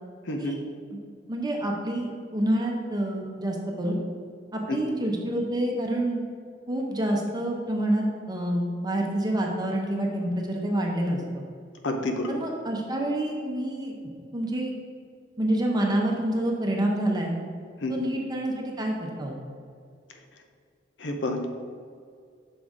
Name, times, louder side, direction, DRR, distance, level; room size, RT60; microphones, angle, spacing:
voice 1, 0.3-0.6 4.7-5.0 11.8-12.3 17.8-17.9 21.0-21.5, left 1 dB, 90° left, 4 dB, 0.7 m, -29 dB
voice 2, 1.3-4.0 4.5-6.2 6.7-11.4 12.3-13.9 14.3-14.7 15.4-17.4 17.9-19.4, right 1 dB, 25° right, 0 dB, 0.7 m, -27 dB
6.1 x 3.9 x 4.7 m, 2.2 s
head